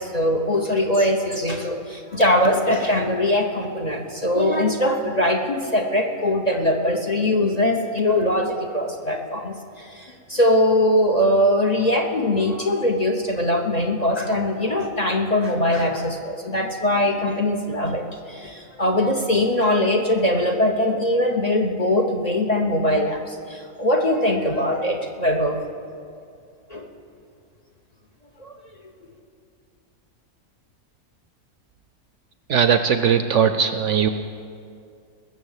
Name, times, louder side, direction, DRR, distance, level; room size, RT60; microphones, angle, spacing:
voice 1, 0.0-25.6 26.7-26.9 28.4-28.6, left 1 dB, 35° left, 3 dB, 0.8 m, -21 dB
voice 2, 32.5-34.1, right 7 dB, 65° right, 9 dB, 0.8 m, -19 dB
20.0 x 7.1 x 7.3 m, 2.4 s
omnidirectional pair, 1.5 m